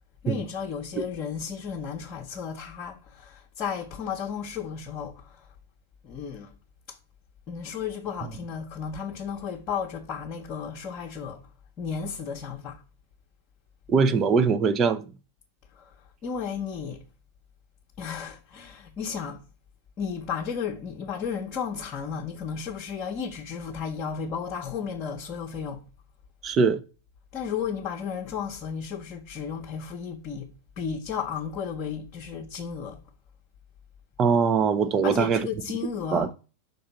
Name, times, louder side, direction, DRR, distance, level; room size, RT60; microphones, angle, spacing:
voice 1, 0.2-5.5 6.0-6.6 6.9-7.0 7.5-11.5 11.8-12.8 15.7-17.0 18.0-19.4 20.0-25.8 27.3-33.0 35.0-36.3, left 6 dB, 35° left, 0.9 m, -34 dB
voice 2, 13.9-15.0 26.4-26.8 34.2-35.5 36.1-36.3, right 5 dB, 25° right, 0.6 m, -22 dB
5.4 x 3.7 x 5.7 m
figure-of-eight pair, 90°, 0 cm